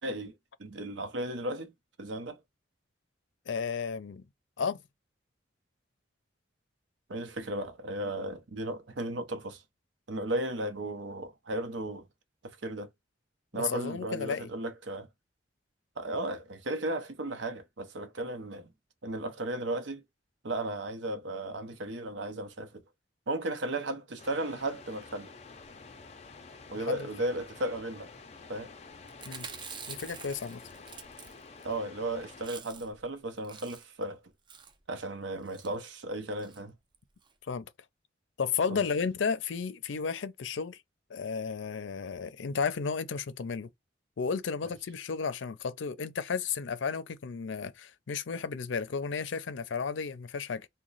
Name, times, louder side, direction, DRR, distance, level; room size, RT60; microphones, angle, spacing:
voice 1, 0.0-1.7 2.0-2.4 7.1-9.6 10.1-12.1 12.4-12.9 13.5-15.1 16.0-18.7 19.0-20.0 20.4-22.8 23.3-25.3 26.7-28.1 28.5-28.7 31.6-34.2 34.9-36.7 38.7-38.8, right 1 dB, 80° right, 0.7 m, -35 dB
voice 2, 3.5-4.2 4.6-4.8 13.5-14.5 26.9-27.1 29.2-29.5 29.9-30.6 37.4-37.7 38.4-40.8 41.1-43.7 44.2-50.7, left 5 dB, 85° left, 0.5 m, -33 dB
sound 1, 24.2-32.5, left 4 dB, 35° left, 0.5 m, -50 dB
Chewing mastication, 29.1-31.7 32.0-32.1 32.3-33.0 33.3-34.0 34.5-34.8 35.4-35.7 36.4-36.6 36.9-37.0 37.2-37.3, right 6 dB, 25° right, 0.4 m, -46 dB
3.0 x 2.2 x 3.9 m
head